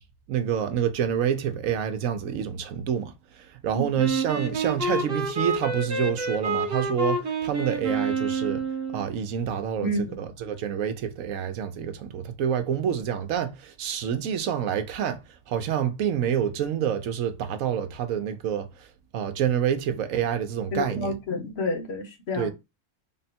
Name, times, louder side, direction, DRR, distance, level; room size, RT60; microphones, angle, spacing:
voice 1, 0.3-8.6 8.9-9.9 10.2-15.2 15.5-18.9 19.1-21.2 22.3-22.5, right 9 dB, 70° right, 1.0 m, -27 dB
Wind instrument woodwind instrument, 4.0-9.1, right 3 dB, 40° right, 1.3 m, -28 dB
voice 2, 9.8-10.2 20.7-22.5, left 1 dB, 50° left, 1.0 m, -29 dB
3.7 x 2.2 x 4.1 m
omnidirectional pair, 1.6 m